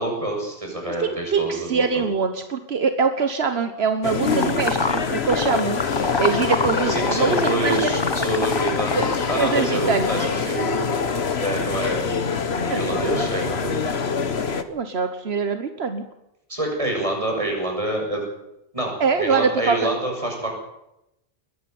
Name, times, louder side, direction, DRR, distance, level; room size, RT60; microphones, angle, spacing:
voice 1, 0.0-2.0 6.9-10.8 11.4-12.3 12.7-13.9 16.5-18.3 18.7-20.5, right 1 dB, 30° right, 0 dB, 7.3 m, -27 dB
voice 2, 1.0-5.8 6.2-7.9 8.8-9.1 9.3-10.3 12.7-13.1 14.7-16.0 19.0-19.9, right 5 dB, 80° right, 8 dB, 1.5 m, -24 dB
sound 1, 4.0-14.6, left 5 dB, 85° left, 1.6 m, -25 dB
sound 2, 4.3-9.5, left 3 dB, 25° left, 1.0 m, -27 dB
21.5 x 12.5 x 9.5 m, 0.86 s
omnidirectional pair, 1.0 m